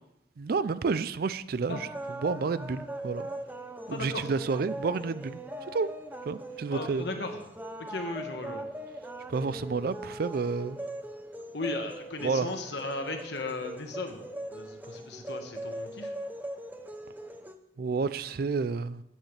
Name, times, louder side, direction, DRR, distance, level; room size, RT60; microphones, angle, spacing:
voice 1, 0.4-3.3 3.9-5.4 5.7-5.9 6.3-7.0 9.3-10.8 12.2-12.5 17.8-19.0, right 4 dB, 50° right, 15 dB, 0.4 m, -30 dB
sound 1, 1.7-17.5, right 1 dB, 10° right, 0.6 m, -40 dB
voice 2, 3.9-4.3 6.7-7.4 7.8-8.6 11.5-14.2 14.5-16.1, left 2 dB, 60° left, 4 dB, 1.4 m, -36 dB
14.5 x 8.8 x 3.3 m, 0.84 s
head